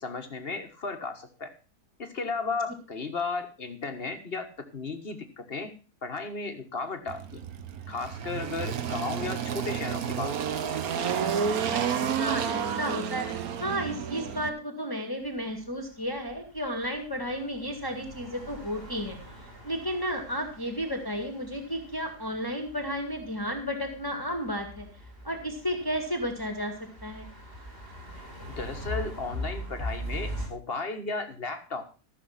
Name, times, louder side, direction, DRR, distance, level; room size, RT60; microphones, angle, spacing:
voice 1, 0.0-1.5 2.0-5.7 6.0-7.4 7.9-10.3 28.2-28.3 28.5-31.9, left 3 dB, 40° left, 6 dB, 1.7 m, -34 dB
Engine, 7.1-14.5, right 7 dB, 65° right, 1.5 m, -30 dB
voice 2, 12.2-19.2 19.6-24.9 25.2-26.7 27.0-27.3, equal, 15° left, 3 dB, 1.9 m, -33 dB
sound 1, 15.2-30.5, left 1 dB, 35° right, 3.7 m, -42 dB
15.0 x 6.8 x 5.8 m, 0.35 s
omnidirectional pair, 1.7 m